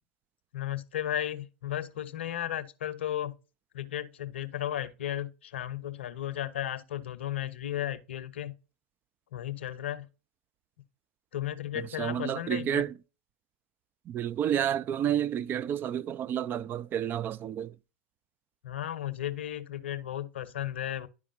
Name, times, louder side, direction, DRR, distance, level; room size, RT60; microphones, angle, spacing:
voice 1, 0.5-3.3 3.7-8.5 9.3-10.1 11.3-12.9 18.6-21.1, left 12 dB, 70° left, 0.7 m, -34 dB
voice 2, 12.0-12.9 14.1-17.7, right 10 dB, 35° right, 0.3 m, -30 dB
11.0 x 4.9 x 2.7 m
figure-of-eight pair, 85°, 6 cm